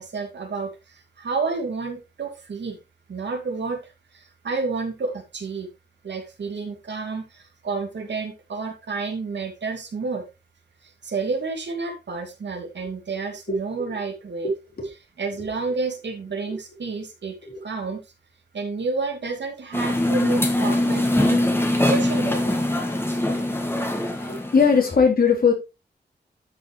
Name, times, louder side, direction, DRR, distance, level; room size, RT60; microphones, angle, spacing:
voice 1, 0.0-2.8 3.1-5.7 6.0-10.2 10.8-14.5 15.2-17.3 17.6-18.0 18.5-21.4 21.8-22.6, right 4 dB, 85° right, 2.6 m, -30 dB
sound 1, 19.7-24.9, left 1 dB, 15° left, 2.2 m, -22 dB
voice 2, 24.0-25.5, left 5 dB, 60° left, 4.0 m, -20 dB
12.5 x 5.8 x 3.3 m
wide cardioid pair, 105°, 18 cm